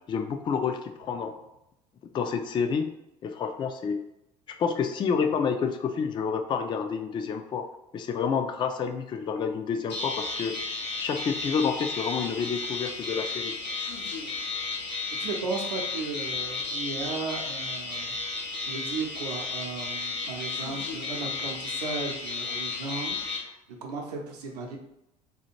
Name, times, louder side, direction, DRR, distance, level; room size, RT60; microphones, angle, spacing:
voice 1, 0.1-1.3 2.1-2.9 3.2-4.1 4.6-7.7 7.9-10.6 11.0-13.6, left 6 dB, 20° left, 7 dB, 0.3 m, -29 dB
sound 1, 9.9-23.4, left 3 dB, 80° left, 0.7 m, -33 dB
voice 2, 15.2-18.1 18.6-24.8, right 4 dB, 70° right, 1 dB, 0.7 m, -35 dB
4.0 x 2.4 x 3.0 m, 0.86 s
figure-of-eight pair, 60°, 21 cm